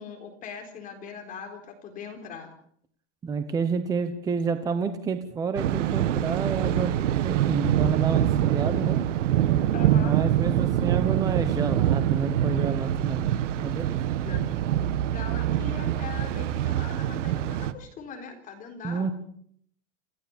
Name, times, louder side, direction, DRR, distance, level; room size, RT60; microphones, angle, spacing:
voice 1, 0.0-2.5 9.7-10.1 14.2-14.6 15.1-19.1, left 6 dB, 20° left, 4 dB, 4.0 m, -40 dB
voice 2, 3.2-6.9 7.2-9.0 9.9-13.3 13.6-14.0 18.8-19.1, right 5 dB, 10° right, 9 dB, 1.0 m, -29 dB
Thunder, 5.6-17.7, right 11 dB, 70° right, 1.6 m, -25 dB
28.0 x 16.5 x 7.1 m, 0.65 s
supercardioid pair, 175°, 38 cm